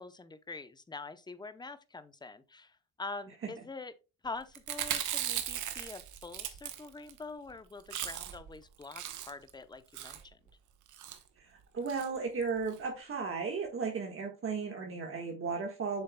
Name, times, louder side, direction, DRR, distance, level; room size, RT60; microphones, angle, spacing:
voice 1, 0.0-3.9 4.2-10.4, left 3 dB, 15° left, 0.7 m, -45 dB
Chewing mastication, 4.5-7.2 7.5-7.6 7.8-8.5 8.8-9.5 9.9-10.3 10.9-11.2 11.9-12.1 12.4-12.5 12.7-12.8, right 11 dB, 80° right, 1.1 m, -37 dB
voice 2, 11.4-16.0, right 5 dB, 45° right, 1.6 m, -35 dB
8.0 x 6.4 x 2.2 m
cardioid pair, 90°, 30 cm